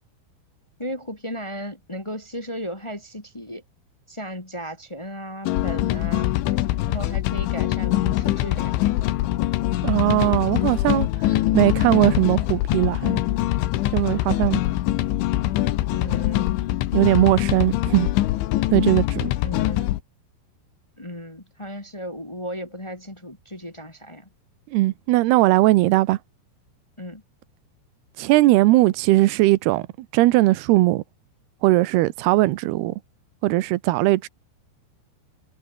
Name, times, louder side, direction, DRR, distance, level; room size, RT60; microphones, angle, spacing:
voice 1, 0.8-3.6 4.1-6.4 6.9-8.7 15.9-16.6 19.4-19.9 21.0-24.3 27.0-27.2, equal, 30° left, 0.5 m, -35 dB
sound 1, 5.5-20.0, left 15 dB, 90° left, 3.7 m, -23 dB
voice 2, 9.8-11.1 11.5-13.2 13.9-14.6 16.9-18.1 18.7-19.3 24.7-26.2 28.2-31.0 31.6-32.9 33.4-34.3, right 18 dB, 75° right, 2.5 m, -19 dB
omnidirectional pair, 5.4 m